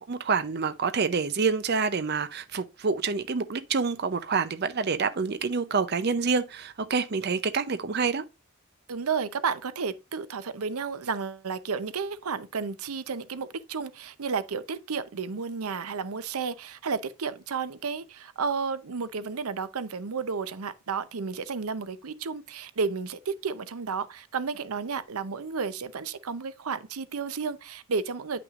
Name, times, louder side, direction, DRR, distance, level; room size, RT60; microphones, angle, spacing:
voice 1, 0.1-8.2, right 5 dB, 50° right, 0.6 m, -27 dB
voice 2, 8.9-28.4, right 5 dB, 90° right, 0.7 m, -32 dB
9.6 x 6.0 x 2.4 m
head